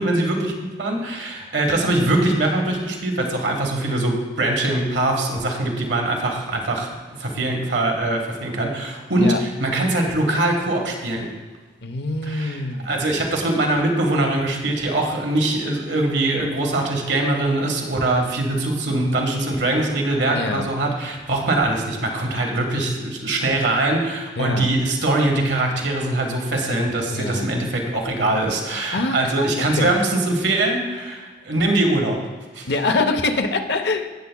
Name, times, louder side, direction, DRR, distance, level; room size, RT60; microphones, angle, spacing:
voice 1, 0.0-11.3 12.3-32.2 32.5-32.7, right 2 dB, 85° right, 2 dB, 1.4 m, -22 dB
voice 2, 11.8-12.9 13.3-13.6 20.3-20.7 24.4-24.7 27.1-27.6 28.9-30.0 32.7-34.1, left 3 dB, 75° left, 7 dB, 0.7 m, -25 dB
16.0 x 7.0 x 2.3 m, 1.4 s
head